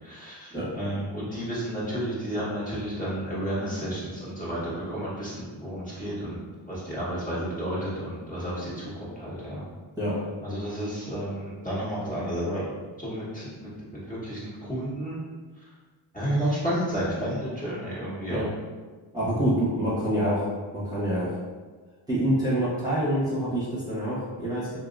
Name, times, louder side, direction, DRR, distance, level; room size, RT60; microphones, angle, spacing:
voice 1, 0.0-6.4 6.7-9.7 10.4-12.7 13.0-15.2 16.1-18.5, right 1 dB, 15° left, -9 dB, 1.3 m, -31 dB
voice 2, 19.1-20.5 20.7-21.4 22.1-24.8, right 1 dB, 10° right, -9 dB, 1.2 m, -26 dB
2.9 x 2.8 x 2.5 m, 1.4 s
supercardioid pair, 65°, 48 cm